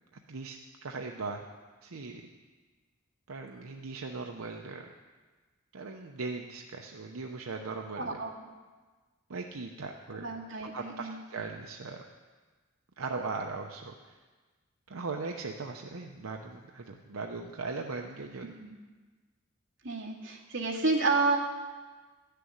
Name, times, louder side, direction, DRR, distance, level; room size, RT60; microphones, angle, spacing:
voice 1, 0.3-1.4 1.8-2.2 3.3-4.9 5.7-8.2 9.3-10.3 10.7-12.0 13.0-14.2 14.9-18.5, right 3 dB, 85° right, 2 dB, 0.8 m, -39 dB
voice 2, 8.0-8.4 10.2-11.2 18.4-18.7 19.8-21.4, right 3 dB, 60° right, -3 dB, 2.1 m, -30 dB
12.5 x 6.8 x 9.5 m, 1.4 s
head